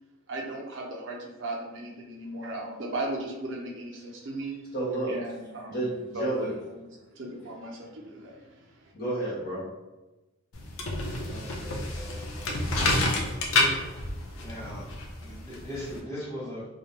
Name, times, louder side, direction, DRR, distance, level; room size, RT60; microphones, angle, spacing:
voice 1, 0.3-4.6 5.1-6.5 6.8-6.9 7.2-8.9, right 1 dB, 60° right, -1 dB, 0.5 m, -37 dB
voice 2, 4.7-5.2 5.7-6.6 8.9-9.6, right 2 dB, 45° left, -8 dB, 1.0 m, -30 dB
sound 1, 10.5-16.0, left 2 dB, 85° left, 0.5 m, -29 dB
voice 3, 11.3-12.7 14.3-14.8 15.2-16.7, equal, 15° left, -9 dB, 0.9 m, -40 dB
2.3 x 2.1 x 2.9 m, 1.1 s
head